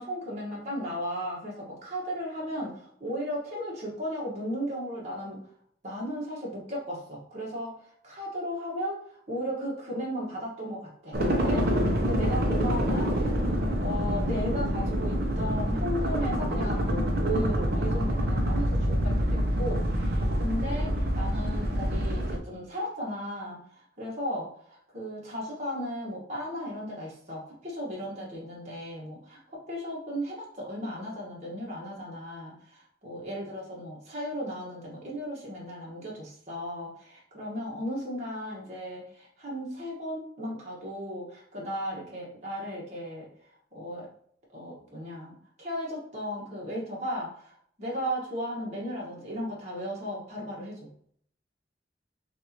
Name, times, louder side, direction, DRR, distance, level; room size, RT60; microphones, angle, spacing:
voice 1, 0.0-5.4 5.8-7.8 8.0-13.4 13.8-24.5 24.9-43.3 43.7-44.1 44.5-50.9, equal, 40° right, -5 dB, 1.4 m, -35 dB
sound 1, 11.1-22.4, equal, 60° right, 0.9 m, -26 dB
6.3 x 2.7 x 2.9 m, 0.63 s
head